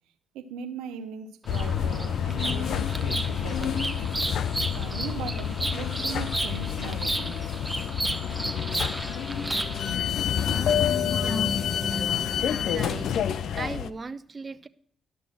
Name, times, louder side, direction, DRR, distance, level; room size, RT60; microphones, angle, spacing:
voice 1, 0.3-4.0 4.6-7.5, right 6 dB, 85° right, 0.7 m, -39 dB
Bird vocalization bird call bird song, 1.4-10.0, right 2 dB, 15° right, 0.9 m, -33 dB
sound 1, 1.5-13.9, left 9 dB, 70° left, 0.4 m, -28 dB
sound 2, 8.7-13.8, left 1 dB, 10° left, 0.4 m, -37 dB
voice 2, 11.2-11.6 11.9-14.7, right 4 dB, 35° right, 0.6 m, -39 dB
11.5 x 6.2 x 6.2 m
supercardioid pair, 55°, 0 cm